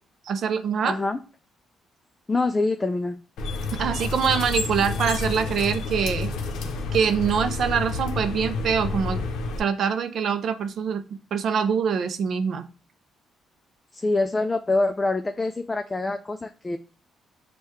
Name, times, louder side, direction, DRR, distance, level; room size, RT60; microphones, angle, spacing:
voice 1, 0.3-1.0 3.8-6.3 6.9-9.2 9.6-12.7, right 7 dB, 65° right, 9 dB, 0.4 m, -24 dB
voice 2, 0.8-1.2 2.3-3.2 13.9-16.8, left 2 dB, 20° left, 7 dB, 0.3 m, -25 dB
sound 1, 3.4-9.6, left 3 dB, 80° left, 0.6 m, -29 dB
6.3 x 2.2 x 3.0 m, 0.36 s
cardioid pair, 90°, 0 cm